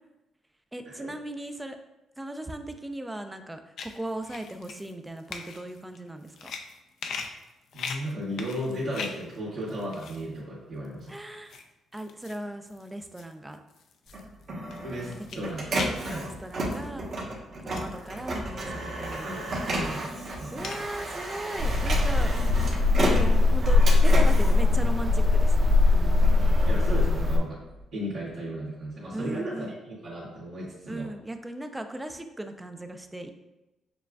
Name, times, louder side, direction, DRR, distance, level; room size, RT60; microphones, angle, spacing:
voice 1, 0.7-1.8 2.2-6.5 11.1-11.6 11.9-13.6 15.3-15.5 16.2-17.1 17.6-19.6 20.5-22.4 23.0-26.3 29.1-29.7 30.9-33.3, right 1 dB, 10° right, 7 dB, 0.4 m, -38 dB
sound 1, 3.8-9.4 9.7-10.3 10.8-11.7 11.9-17.1 17.7-18.5 19.1-19.2 19.6-21.2, left 5 dB, 70° left, 0.4 m, -41 dB
voice 2, 7.7-11.2 14.8-16.3 19.2-20.1 20.4-20.8 26.4-27.6 27.9-31.1, equal, 70° right, -10 dB, 1.4 m, -35 dB
Printer, 14.1-25.5 26.0-27.8, right 1 dB, 55° right, 1.1 m, -33 dB
sound 2, 21.6-27.4, left 3 dB, 30° right, 0.8 m, -21 dB
6.7 x 2.4 x 2.3 m, 0.97 s
cardioid pair, 90°, 0 cm